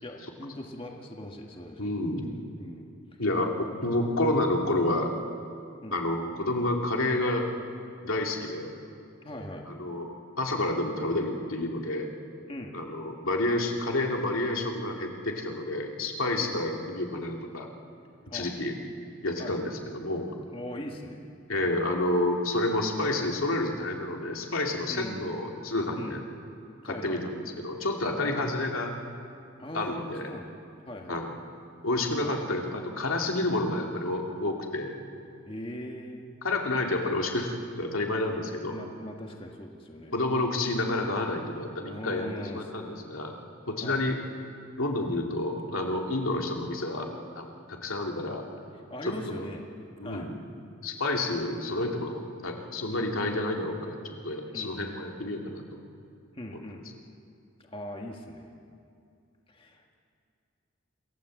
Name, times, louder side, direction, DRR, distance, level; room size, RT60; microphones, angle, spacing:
voice 1, 0.0-1.9 2.2-2.8 3.1-3.2 5.8-6.0 9.2-9.7 12.5-12.8 16.4-16.6 18.3-18.5 19.4-19.6 20.5-21.2 24.9-25.3 25.9-26.2 26.8-27.2 28.2-28.4 29.6-30.5 30.9-31.2 32.2-32.6 35.5-36.3 38.3-40.2 41.8-42.7 43.8-44.0 48.9-49.7 50.0-50.3 52.9-53.1 54.5-55.0 56.3-56.9 57.6-58.5 59.5-59.8, left 1 dB, 25° left, 1 dB, 1.7 m, -40 dB
voice 2, 1.8-2.3 3.2-5.1 5.9-7.5 8.0-8.7 9.7-10.1 10.4-12.1 12.7-17.7 18.3-18.7 19.2-20.3 21.5-26.2 26.8-28.9 29.7-30.3 31.1-31.4 31.8-34.9 36.4-38.8 40.1-43.3 43.7-44.2 44.8-47.1 47.4-48.4 49.0-49.4 50.0-50.4 50.8-54.0 54.2-55.8, left 2 dB, 85° left, 1 dB, 2.5 m, -29 dB
27.0 x 16.0 x 7.8 m, 2.4 s
head